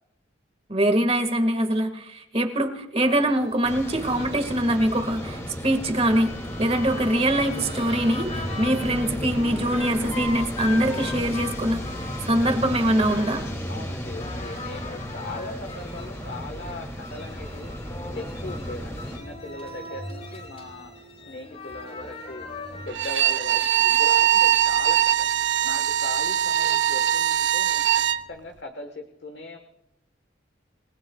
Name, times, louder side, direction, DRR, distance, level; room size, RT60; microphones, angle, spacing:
voice 1, 0.7-6.3 6.6-11.9 12.2-13.4, right 1 dB, 30° right, 6 dB, 1.9 m, -23 dB
sound 1, 3.0-22.9, left 2 dB, 35° left, 4.7 m, -39 dB
sound 2, 3.6-19.2, equal, 15° left, 2.7 m, -34 dB
voice 2, 13.7-17.7 18.1-20.9 21.3-25.3 25.6-28.0 28.3-29.6, left 2 dB, 60° left, 4 dB, 1.4 m, -39 dB
Bowed string instrument, 22.9-28.2, right 11 dB, 65° right, 0.8 m, -21 dB
28.5 x 19.5 x 2.4 m, 0.87 s
head